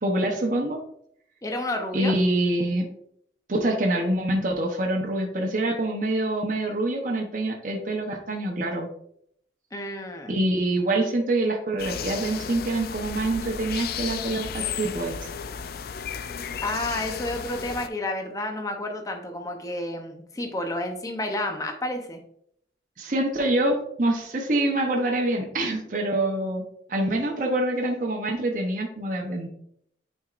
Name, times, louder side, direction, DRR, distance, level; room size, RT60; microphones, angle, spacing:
voice 1, 0.0-0.8 1.9-2.9 3.5-8.9 10.3-15.2 23.0-26.6 26.9-29.5, right 1 dB, 45° right, 1 dB, 0.8 m, -25 dB
voice 2, 1.4-2.1 9.7-10.4 16.6-22.2, left 1 dB, 20° left, 4 dB, 0.7 m, -30 dB
sound 1, 11.8-17.9, left 7 dB, 55° left, 0.3 m, -34 dB
9.0 x 4.4 x 2.5 m, 0.70 s
head